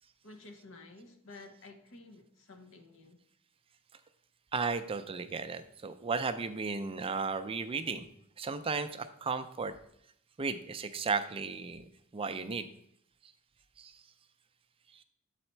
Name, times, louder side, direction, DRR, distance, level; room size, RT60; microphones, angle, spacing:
voice 1, 0.2-3.2, left 2 dB, 65° left, 0.9 m, -52 dB
voice 2, 4.5-8.1 8.4-9.7 10.4-11.9 12.1-12.7 13.2-13.3 13.8-14.0 14.9-15.0, right 4 dB, 25° right, 0.4 m, -35 dB
7.9 x 4.2 x 4.4 m
head